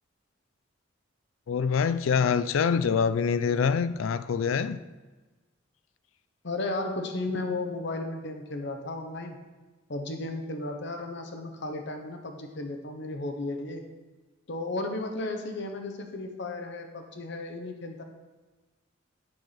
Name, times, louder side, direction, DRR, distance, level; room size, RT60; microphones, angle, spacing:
voice 1, 1.5-4.8, left 6 dB, 75° left, 0.4 m, -25 dB
voice 2, 6.4-9.4 9.9-13.8 14.5-18.0, left 2 dB, 60° left, 1.0 m, -34 dB
7.9 x 4.6 x 5.7 m
head